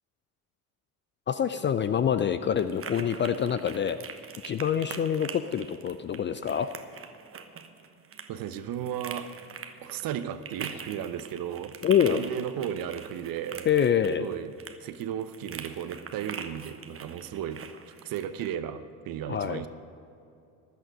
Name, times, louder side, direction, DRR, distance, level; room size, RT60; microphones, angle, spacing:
voice 1, 1.3-4.0 4.4-6.7 11.8-12.2 13.7-14.3 19.3-19.6, left 8 dB, 25° left, 11 dB, 0.4 m, -26 dB
sound 1, 1.4-18.5, right 6 dB, 30° right, 1.1 m, -44 dB
voice 2, 8.3-9.3 9.8-11.7 12.1-13.7 14.2-14.5 14.8-17.6 18.0-19.7, right 9 dB, 45° right, 12 dB, 1.0 m, -34 dB
16.0 x 11.5 x 5.3 m, 2.6 s
figure-of-eight pair, 60°, 47 cm